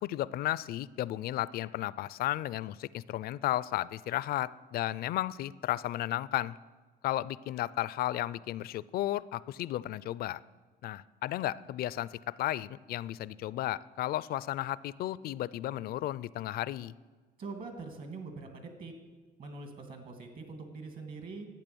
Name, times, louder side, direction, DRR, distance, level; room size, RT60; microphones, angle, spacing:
voice 1, 0.0-6.6 7.0-10.4 10.8-16.9, left 14 dB, 65° left, 19 dB, 0.4 m, -34 dB
voice 2, 17.4-18.9 19.4-21.5, right 3 dB, 55° right, 5 dB, 2.4 m, -43 dB
12.0 x 8.7 x 7.0 m, 1.4 s
cardioid pair, 110°, 17 cm